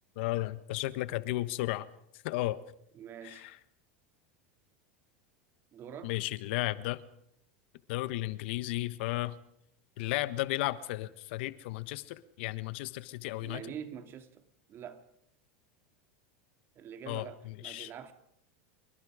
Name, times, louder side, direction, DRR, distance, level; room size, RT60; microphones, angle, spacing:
voice 1, 0.2-1.9 2.2-2.6 3.2-3.6 6.0-7.0 7.9-9.3 10.0-13.6 17.1-17.9, left 17 dB, 70° left, 1.3 m, -34 dB
voice 2, 2.9-3.5 5.7-6.1 13.4-14.4 14.7-15.0 16.7-18.1, right 8 dB, 40° right, 2.7 m, -45 dB
27.0 x 23.5 x 5.0 m
hypercardioid pair, 105°, 6 cm